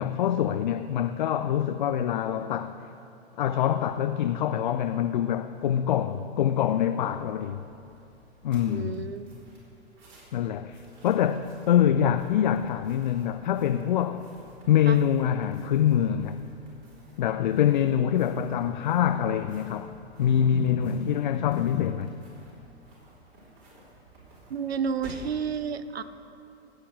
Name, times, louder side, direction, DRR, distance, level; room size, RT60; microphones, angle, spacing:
voice 1, 0.0-2.8 3.4-7.6 8.4-9.1 10.3-14.2 14.7-16.4 17.2-22.1, left 9 dB, 45° left, 9 dB, 0.4 m, -25 dB
sound 1, 7.0-25.4, right 2 dB, 30° right, 3.6 m, -54 dB
voice 2, 8.7-9.3 14.9-15.0 24.5-26.0, right 6 dB, 70° right, 13 dB, 0.7 m, -31 dB
15.0 x 8.4 x 6.3 m, 2.7 s
figure-of-eight pair, 105°, 33 cm